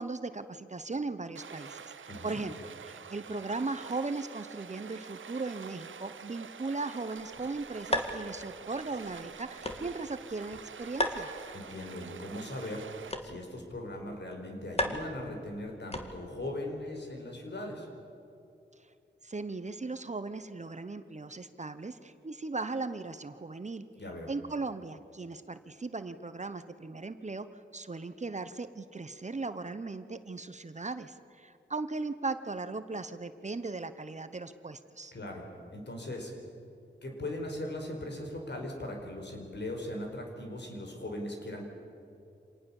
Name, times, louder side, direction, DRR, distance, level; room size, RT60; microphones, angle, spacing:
voice 1, 0.0-2.5 2.8-11.3 18.8-18.9 19.2-23.8 24.3-35.1, right 3 dB, 35° right, 11 dB, 1.0 m, -38 dB
Stream, 1.4-13.1, right 7 dB, 90° right, 0.8 m, -47 dB
voice 2, 2.1-2.4 11.5-17.9 24.0-24.3 35.1-35.5 35.7-36.3 37.0-41.6, left 1 dB, 65° left, 2 dB, 4.9 m, -39 dB
sound 1, 7.2-16.5, left 1 dB, 30° left, 2.1 m, -38 dB
26.5 x 19.0 x 7.2 m, 2.6 s
wide cardioid pair, 70°, 20 cm